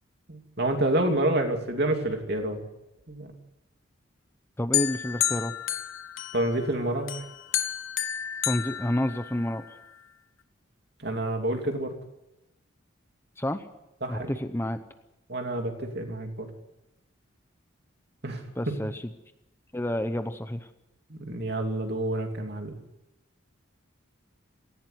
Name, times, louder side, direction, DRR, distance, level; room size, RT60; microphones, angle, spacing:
voice 1, 0.3-2.6 3.1-3.3 6.3-7.1 11.0-11.9 14.0-14.3 15.3-16.5 18.2-18.4 21.1-22.7, right 1 dB, 50° right, 4 dB, 2.9 m, -28 dB
voice 2, 4.6-5.5 8.4-9.8 13.4-13.7 14.1-14.8 18.6-19.1 19.7-20.7, left 1 dB, 10° left, 9 dB, 0.8 m, -29 dB
sound 1, 4.7-6.7 7.1-9.6, left 11 dB, 75° left, 1.4 m, -30 dB
18.5 x 16.0 x 9.5 m, 0.92 s
head